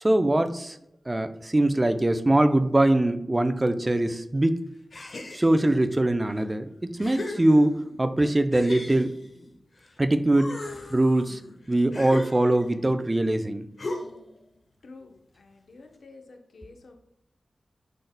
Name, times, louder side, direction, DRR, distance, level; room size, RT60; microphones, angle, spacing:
voice 1, 0.0-0.8 1.1-4.6 5.3-7.7 8.0-9.1 10.0-10.5 10.9-11.4 11.7-13.7, right 1 dB, 25° right, 9 dB, 0.5 m, -22 dB
sound 1, 4.9-5.8 6.4-6.5 7.0-8.0 8.5-9.9 10.3-12.8 13.8-14.4, left 2 dB, 60° left, 1.1 m, -38 dB
voice 2, 14.8-16.9, left 3 dB, 85° left, 4 dB, 0.8 m, -49 dB
10.5 x 4.0 x 2.2 m, 0.80 s
wide cardioid pair, 70°, 0 cm